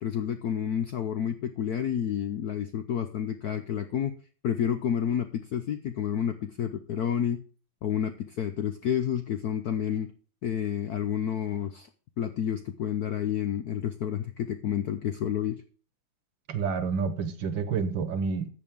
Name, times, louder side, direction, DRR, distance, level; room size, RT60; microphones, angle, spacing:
voice 1, 0.0-4.1 4.4-7.4 7.8-10.1 10.4-11.9 12.2-15.6, left 9 dB, 70° left, 0.9 m, -30 dB
voice 2, 16.5-18.5, right 5 dB, 65° right, 1.8 m, -29 dB
13.5 x 8.5 x 3.6 m
omnidirectional pair, 2.3 m